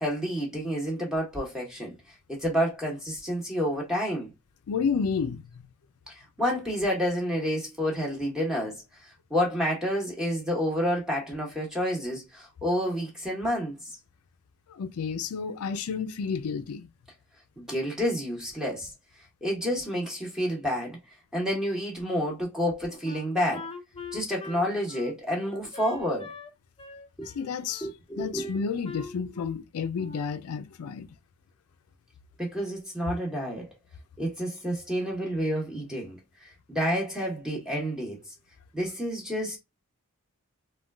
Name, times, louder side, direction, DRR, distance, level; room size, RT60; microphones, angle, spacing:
voice 1, 0.0-1.9 2.3-4.3 6.1-8.8 9.3-13.7 17.6-18.9 19.4-21.0 21.3-23.7 24.1-26.3 27.2-27.3 27.8-28.5 32.4-33.7 34.2-36.2 36.7-38.2 38.7-39.6, equal, 5° right, 1.0 m, -29 dB
voice 2, 4.7-5.6 14.7-16.9 27.3-27.9 28.2-31.1, left 6 dB, 90° left, 0.4 m, -31 dB
Wind instrument woodwind instrument, 23.0-26.5 26.8-27.9 28.4-29.6 30.0-30.4, left 4 dB, 25° left, 0.4 m, -43 dB
3.7 x 2.3 x 2.3 m
head